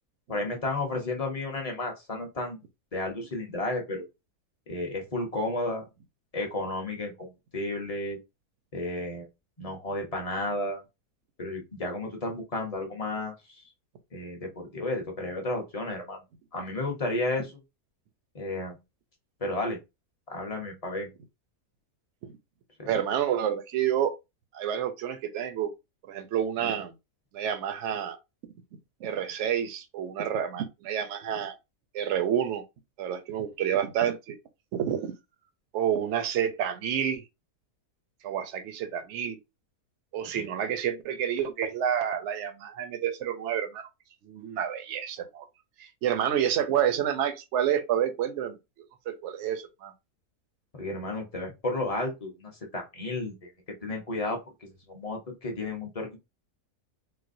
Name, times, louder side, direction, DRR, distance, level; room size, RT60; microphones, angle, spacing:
voice 1, 0.3-2.6 2.9-4.0 4.7-5.8 6.3-8.2 8.7-9.3 9.6-10.8 11.4-13.6 14.1-16.2 16.5-17.6 18.3-18.8 19.4-19.8 20.3-21.1 22.8-22.9 40.3-40.4 50.7-53.5 53.8-56.2, left 2 dB, 30° left, 0.7 m, -32 dB
voice 2, 22.8-24.1 24.5-25.7 26.1-26.9 27.3-28.2 29.0-31.5 31.9-32.6 33.0-34.4 34.7-35.1 35.7-37.2 38.2-39.4 40.1-43.9 44.2-45.5 45.8-48.6 49.1-49.9, right 9 dB, 60° right, 0.8 m, -29 dB
4.1 x 2.2 x 2.6 m
omnidirectional pair, 1.7 m